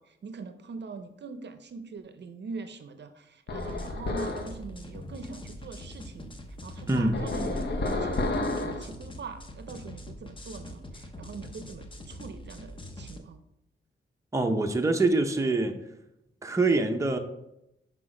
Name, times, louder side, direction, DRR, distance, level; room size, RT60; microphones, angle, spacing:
voice 1, 0.0-6.4 6.6-13.4, right 4 dB, 55° right, 9 dB, 0.6 m, -43 dB
sound 1, 3.5-4.5 7.1-8.9, left 2 dB, 55° left, 0.9 m, -30 dB
sound 2, 3.6-13.2, left 1 dB, 25° left, 0.7 m, -44 dB
voice 2, 6.9-7.2 14.3-15.7 16.4-17.2, right 2 dB, 15° right, 4 dB, 0.6 m, -24 dB
6.0 x 5.1 x 4.9 m, 0.85 s
wide cardioid pair, 120°, 21 cm